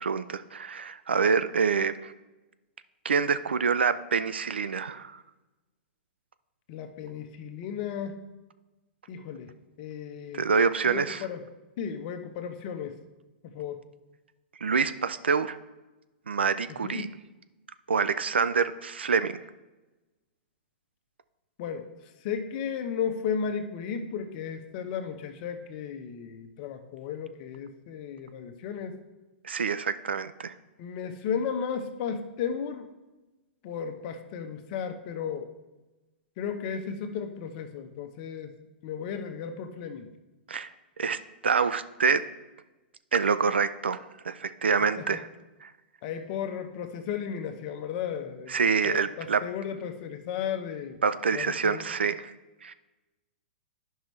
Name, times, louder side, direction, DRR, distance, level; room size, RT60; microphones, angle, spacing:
voice 1, 0.0-2.1 3.0-5.2 10.3-11.2 14.6-15.6 16.3-17.1 17.9-19.3 29.4-30.5 40.5-40.7 41.0-42.2 43.1-45.3 45.6-45.7 48.5-49.4 51.0-52.3 52.6-52.7, right 5 dB, 80° right, 13 dB, 0.4 m, -26 dB
voice 2, 6.7-8.2 9.1-9.5 9.8-10.4 10.8-11.4 11.8-12.9 13.4-13.8 16.8-17.1 21.6-21.9 22.2-29.0 30.8-32.9 33.6-35.5 36.4-38.5 38.8-40.1 45.0-45.2 46.0-48.6 48.8-51.0 51.3-51.9, left 7 dB, 45° left, 7 dB, 0.8 m, -34 dB
10.5 x 5.5 x 3.2 m, 1.1 s
figure-of-eight pair, 110°, 6 cm